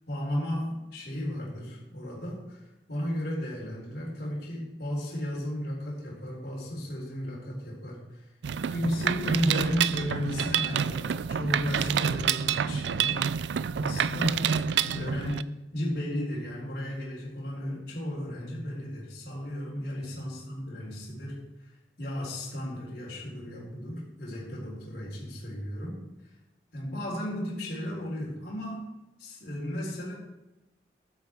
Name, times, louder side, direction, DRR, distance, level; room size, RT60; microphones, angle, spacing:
voice 1, 0.1-8.3 8.7-13.2 13.8-26.0 26.7-28.8 29.2-30.1, equal, 65° left, -5 dB, 4.0 m, -34 dB
Mechanisms, 8.4-15.4, right 7 dB, 85° right, 0.4 m, -28 dB
12.5 x 8.7 x 4.7 m, 0.99 s
head